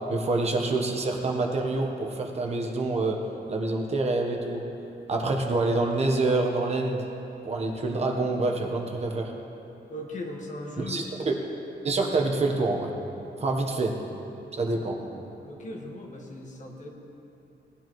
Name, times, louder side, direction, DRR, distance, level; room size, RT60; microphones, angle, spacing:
voice 1, 0.1-3.2 3.5-4.6 5.1-7.0 7.4-9.3 10.8-11.4 11.8-12.9 13.4-14.0 14.6-15.0, right 2 dB, 35° right, 1 dB, 1.0 m, -26 dB
voice 2, 9.9-11.4 14.7-14.9 15.4-16.9, left 1 dB, 45° left, 0 dB, 1.4 m, -39 dB
19.0 x 10.5 x 3.1 m, 2.9 s
wide cardioid pair, 165°, 18 cm